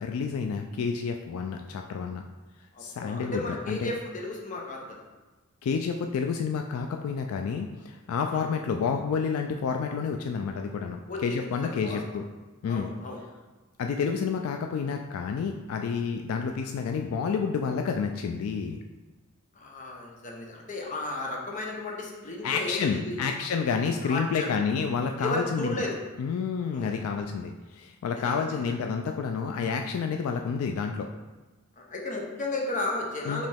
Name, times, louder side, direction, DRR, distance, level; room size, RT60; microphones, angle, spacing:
voice 1, 0.0-2.2 2.8-3.9 5.6-12.3 12.6-12.9 13.8-18.8 22.4-25.8 26.2-31.1 33.3-33.4, left 5 dB, 75° left, 4 dB, 0.3 m, -29 dB
voice 2, 2.7-5.0 8.3-8.5 11.1-12.0 12.7-13.2 19.6-23.3 24.0-24.5 25.2-26.0 26.7-26.9 28.2-28.6 31.8-33.5, left 2 dB, 35° left, -1 dB, 0.8 m, -34 dB
5.3 x 3.0 x 3.4 m, 1.2 s
head